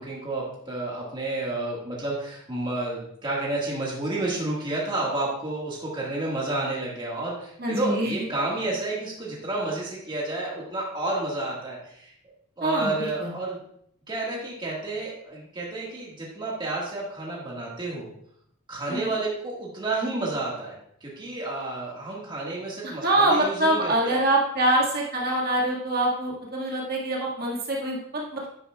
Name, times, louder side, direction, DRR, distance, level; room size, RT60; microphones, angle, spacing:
voice 1, 0.0-12.1 12.6-13.6 14.1-18.1 18.7-20.7 21.0-24.2, right 2 dB, 20° right, -4 dB, 1.8 m, -30 dB
voice 2, 7.6-8.1 12.6-13.3 18.9-19.1 22.8-28.5, right 1 dB, 45° right, -3 dB, 1.9 m, -25 dB
10.5 x 10.0 x 2.4 m, 0.70 s
head